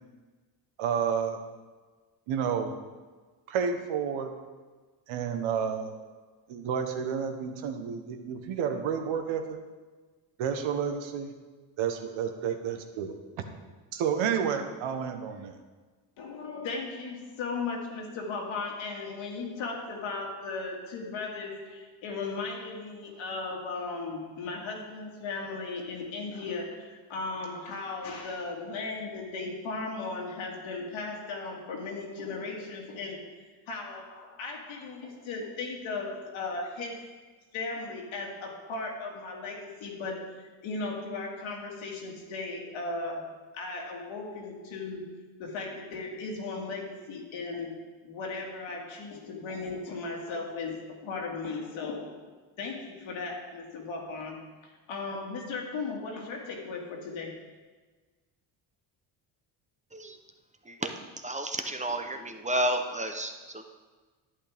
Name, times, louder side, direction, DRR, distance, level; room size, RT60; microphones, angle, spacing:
voice 1, 0.8-1.4 2.3-2.8 3.5-4.3 5.1-6.0 6.5-9.6 10.4-11.3 11.8-13.1 13.9-15.5, right 7 dB, 75° right, 6 dB, 1.3 m, -30 dB
voice 2, 16.2-33.2 33.7-37.0 37.5-45.1 45.4-47.8 48.0-52.3 52.6-57.5, left 3 dB, 70° left, 0 dB, 2.2 m, -36 dB
voice 3, 60.7-63.6, right 1 dB, 15° right, 5 dB, 0.8 m, -32 dB
11.0 x 8.6 x 3.5 m, 1.3 s
cardioid pair, 90°, 48 cm